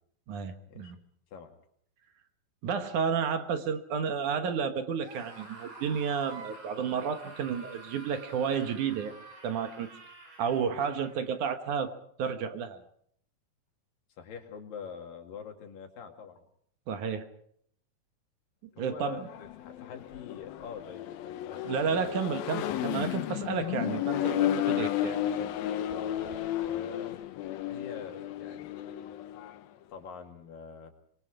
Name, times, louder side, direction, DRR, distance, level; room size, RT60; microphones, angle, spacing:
voice 1, 0.3-1.0 2.6-9.1 9.4-9.9 10.4-11.9 12.2-12.8 16.9-17.2 18.8-19.3 21.6-25.6, right 6 dB, 65° right, 8 dB, 2.6 m, -31 dB
Screaming, 5.0-11.5, right 3 dB, 35° right, 4.4 m, -49 dB
voice 2, 14.2-16.4 18.8-22.1 25.9-27.2 27.7-28.7 29.9-30.9, left 6 dB, 70° left, 4 dB, 3.9 m, -45 dB
Accelerating revving vroom, 19.2-29.6, left 12 dB, 85° left, 2.8 m, -33 dB
25.5 x 22.0 x 4.9 m, 0.65 s
omnidirectional pair, 4.1 m